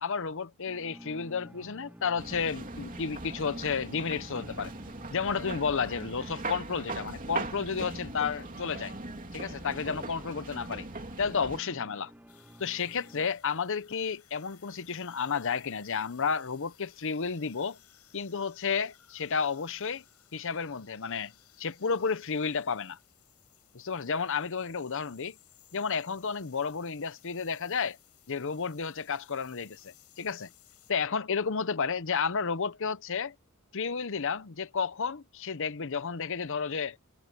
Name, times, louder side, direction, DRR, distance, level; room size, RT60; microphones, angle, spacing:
voice 1, 0.0-4.7 5.1-8.9 9.3-10.9 11.2-12.1 12.6-17.8 18.1-20.0 20.3-21.3 21.6-23.0 23.7-25.3 25.7-28.0 28.3-30.5 30.9-33.3 33.7-37.0, left 5 dB, 60° left, 0.8 m, -32 dB
sound 1, 0.7-13.3, equal, 5° right, 1.4 m, -50 dB
sound 2, 2.2-11.6, right 2 dB, 40° right, 3.2 m, -40 dB
sound 3, 12.3-30.9, left 13 dB, 85° left, 7.9 m, -61 dB
head